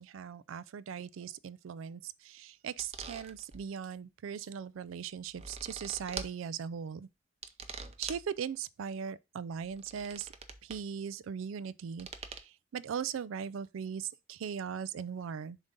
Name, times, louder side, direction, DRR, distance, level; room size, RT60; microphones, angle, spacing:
voice 1, 0.0-7.1 8.0-10.3 10.6-15.6, right 7 dB, 80° right, 0.4 m, -39 dB
sound 1, 2.8-3.6 5.1-6.3 7.4-8.3 9.6-10.8 12.0-12.4, right 5 dB, 30° right, 0.6 m, -44 dB
7.0 x 2.8 x 5.1 m
head